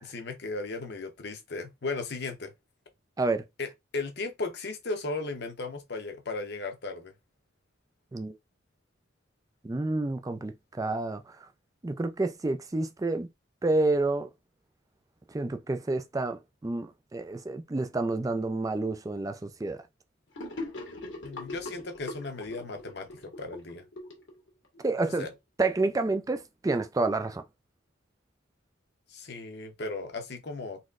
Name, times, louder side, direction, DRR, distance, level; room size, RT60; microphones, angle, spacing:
voice 1, 0.0-2.5 3.6-7.1 21.2-23.8 25.2-25.3 29.1-30.8, left 3 dB, 60° left, 0.9 m, -36 dB
voice 2, 9.6-11.5 11.8-13.3 13.6-14.3 15.3-19.8 24.8-25.3 25.6-27.4, right 2 dB, 20° right, 0.3 m, -29 dB
Gurgling / Sink (filling or washing), 20.3-24.8, left 2 dB, 75° left, 1.4 m, -41 dB
4.1 x 3.0 x 2.4 m
head